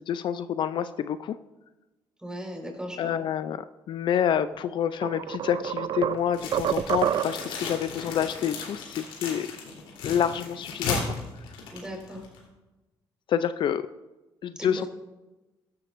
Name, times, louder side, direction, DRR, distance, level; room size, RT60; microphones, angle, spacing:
voice 1, 0.0-1.4 3.0-9.5 10.0-11.1 13.3-13.8 14.4-14.8, left 9 dB, 60° left, 13 dB, 0.4 m, -28 dB
voice 2, 2.2-3.1 11.7-12.2 14.6-14.9, equal, 10° right, 1 dB, 4.4 m, -37 dB
sound 1, 4.4-4.5 5.0-7.6, right 10 dB, 60° right, 0.4 m, -28 dB
opening chips, 6.3-12.4, left 4 dB, 85° left, 3.4 m, -35 dB
15.5 x 12.5 x 2.6 m, 1.1 s
supercardioid pair, 75°, 9 cm